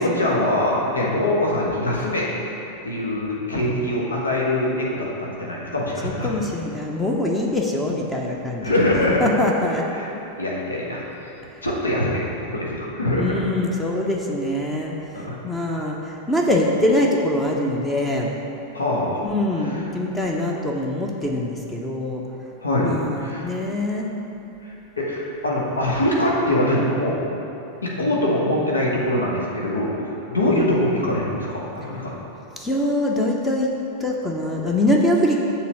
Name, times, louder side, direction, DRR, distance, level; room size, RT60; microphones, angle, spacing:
voice 1, 0.0-2.3 2.8-6.4 8.6-9.3 9.9-10.1 10.4-11.0 11.6-13.4 15.1-15.3 18.7-19.2 22.6-23.5 24.6-27.2 27.8-29.9 30.3-32.1, left 1 dB, 75° left, -4 dB, 1.3 m, -23 dB
voice 2, 6.0-8.8 9.2-9.8 13.1-18.3 19.3-22.2 22.8-24.1 30.5-30.6 32.6-33.7 34.0-35.4, left 1 dB, 10° left, -1 dB, 0.7 m, -23 dB
6.9 x 3.8 x 6.3 m, 2.9 s
figure-of-eight pair, 90°, 0 cm